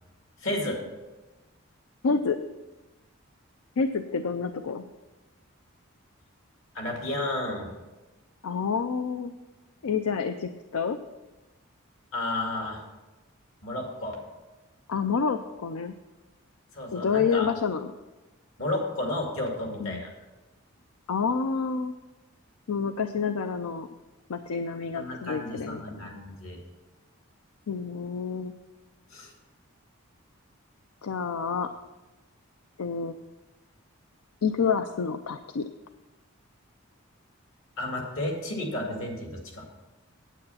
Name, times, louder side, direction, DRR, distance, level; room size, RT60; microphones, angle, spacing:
voice 1, 0.4-0.8 6.7-7.7 12.1-12.8 13.6-14.2 16.7-17.5 18.6-20.1 24.9-26.6 29.1-29.3 37.8-39.6, left 1 dB, 70° left, 1 dB, 2.4 m, -32 dB
voice 2, 2.0-2.4 3.8-4.8 8.4-9.3 9.8-11.0 14.9-15.9 16.9-17.9 19.8-20.0 21.1-21.9 22.7-23.9 24.3-26.1 27.7-28.5 31.0-31.7 32.8-33.2 34.4-35.7, left 5 dB, 90° left, 9 dB, 0.5 m, -28 dB
9.2 x 8.7 x 5.6 m, 1.1 s
head